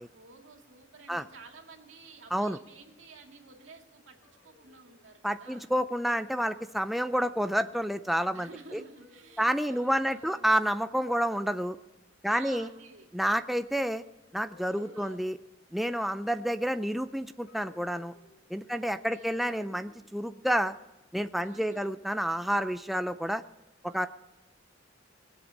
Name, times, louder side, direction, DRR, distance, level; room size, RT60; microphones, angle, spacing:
voice 1, 0.1-4.2 4.4-5.7 8.3-10.6 12.2-13.1 14.7-15.2 18.6-19.4 21.4-21.9 23.9-24.1, right 3 dB, 80° right, 2 dB, 2.4 m, -52 dB
sound 1, 4.2-5.1 6.3-6.7 7.2-7.6 9.0-9.6 11.1-11.7 13.6-13.7 14.5-15.5 17.4-18.5 19.5-20.1 21.3-21.9, left 3 dB, 85° left, 3.1 m, -58 dB
voice 2, 5.2-8.8 9.4-11.8 12.2-12.7 13.1-14.0 14.3-15.4 15.7-18.1 18.5-20.7 21.1-23.4 23.8-24.1, equal, ahead, 9 dB, 0.4 m, -29 dB
20.5 x 8.0 x 6.4 m, 1.0 s
head